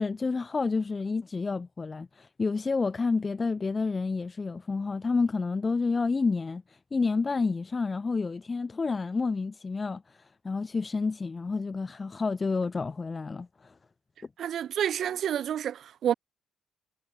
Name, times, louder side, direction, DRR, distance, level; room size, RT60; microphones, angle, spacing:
voice 1, 0.0-13.7, left 4 dB, 30° left, 3.3 m, -29 dB
voice 2, 14.4-16.1, right 10 dB, 65° right, 0.7 m, -29 dB
cardioid pair, 90°, 0 cm